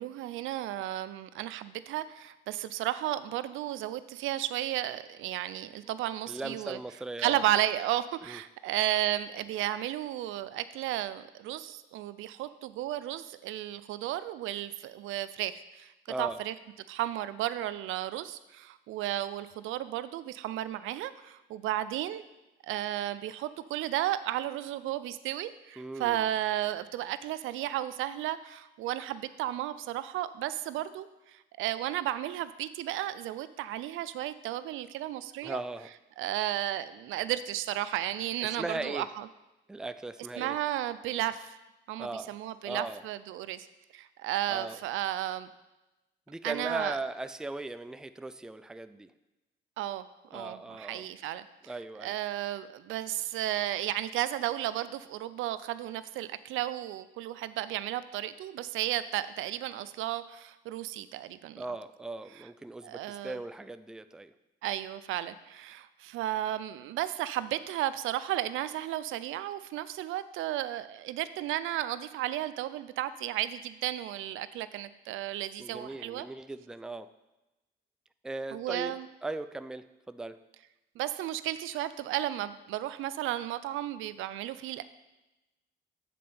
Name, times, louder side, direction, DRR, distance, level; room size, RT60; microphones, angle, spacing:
voice 1, 0.0-6.8 7.2-15.9 16.2-16.5 16.9-22.2 22.7-35.6 36.2-39.3 40.4-41.5 41.9-43.7 43.9-45.5 46.4-47.0 49.8-50.0 50.3-61.6 62.8-63.4 64.6-76.3 78.5-79.1 81.0-84.8, right 13 dB, 85° right, 14 dB, 0.4 m, -33 dB
voice 2, 6.3-7.4 8.3-8.4 16.1-16.4 25.8-26.3 35.4-35.9 38.4-39.1 39.7-40.6 42.0-42.4 42.6-43.0 44.5-44.8 46.3-49.1 50.3-51.1 51.7-52.2 61.6-64.3 75.6-77.1 78.2-78.9 79.2-80.4, right 2 dB, 5° right, 11 dB, 0.3 m, -38 dB
7.6 x 4.3 x 6.8 m, 1.0 s
cardioid pair, 90°, 20 cm